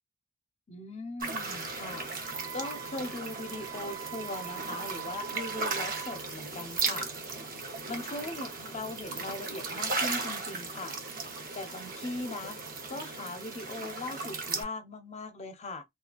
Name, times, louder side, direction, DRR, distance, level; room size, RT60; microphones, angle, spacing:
voice 1, 0.7-2.1 2.5-7.1 7.9-11.0 11.5-12.6 12.9-15.8, left 2 dB, 30° left, 0.5 m, -39 dB
sound 1, 1.2-14.6, right 4 dB, 40° right, 0.7 m, -36 dB
Wind instrument woodwind instrument, 2.2-6.2, right 16 dB, 85° right, 0.8 m, -43 dB
2.9 x 2.3 x 2.4 m
head